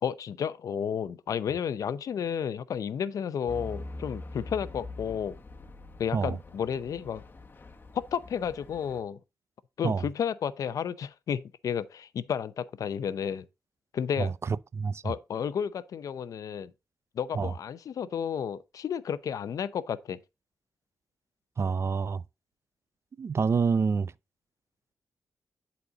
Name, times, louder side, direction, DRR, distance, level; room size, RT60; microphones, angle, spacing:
voice 1, 0.0-5.4 6.0-7.2 7.9-9.2 9.8-13.5 13.9-14.3 15.0-16.7 17.1-20.2, left 8 dB, 75° left, 0.6 m, -32 dB
Truck / Idling, 3.5-9.0, left 2 dB, 35° left, 1.4 m, -44 dB
voice 2, 14.2-15.1 17.3-17.5 21.6-22.2 23.2-24.1, right 5 dB, 50° right, 0.4 m, -27 dB
11.0 x 4.3 x 3.8 m
cardioid pair, 65°, 6 cm